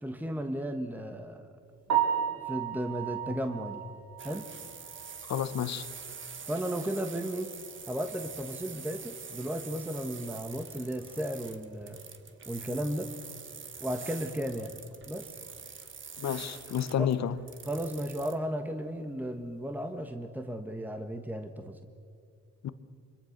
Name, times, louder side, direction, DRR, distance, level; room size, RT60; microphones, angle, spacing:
voice 1, 0.0-1.5 2.5-3.8 4.2-4.5 6.5-7.5 7.9-12.0 12.5-13.1 13.8-14.8 15.1-15.3 17.0-17.1 17.6-21.8, equal, 5° right, 7 dB, 1.3 m, -34 dB
Piano, 1.9-5.9 6.2-6.3 6.8-6.9 7.3-7.4 10.5-10.6 19.0-19.3, right 9 dB, 65° right, 5.0 m, -33 dB
sound 1, 4.2-18.4, right 6 dB, 40° right, 1.7 m, -45 dB
voice 2, 5.3-5.9 16.2-17.4 22.6-22.7, left 9 dB, 60° left, 14 dB, 1.1 m, -30 dB
25.5 x 23.0 x 6.7 m, 2.4 s
cardioid pair, 90°, 30 cm